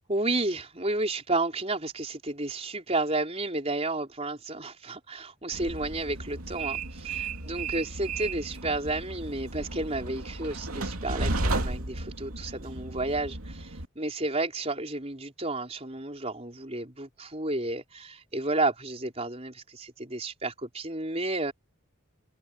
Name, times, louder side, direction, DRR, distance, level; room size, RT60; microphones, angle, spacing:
voice 1, 0.1-21.5, right 2 dB, 30° right, 4.7 m, -31 dB
Train, 5.5-13.9, right 2 dB, 80° right, 2.9 m, -34 dB
head